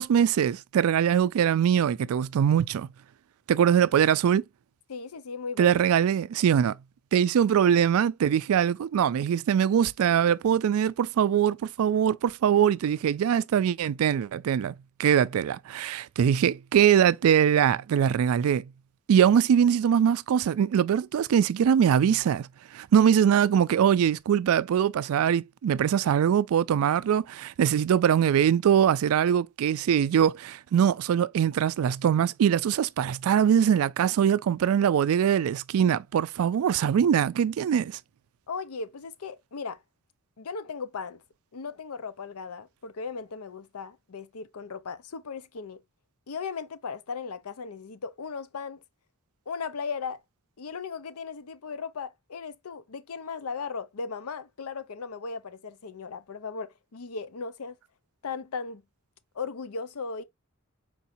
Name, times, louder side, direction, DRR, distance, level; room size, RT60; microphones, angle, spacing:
voice 1, 0.0-2.9 3.5-4.4 5.6-6.8 7.1-14.7 15.0-18.6 19.1-22.5 22.7-38.0, right 8 dB, 70° right, 0.3 m, -22 dB
voice 2, 4.9-5.8 38.5-39.8 40.4-41.2 41.5-45.8 46.3-48.8 49.5-50.2 50.6-57.8 58.2-58.8 59.3-60.2, left 5 dB, 85° left, 0.6 m, -37 dB
4.6 x 4.2 x 2.6 m
head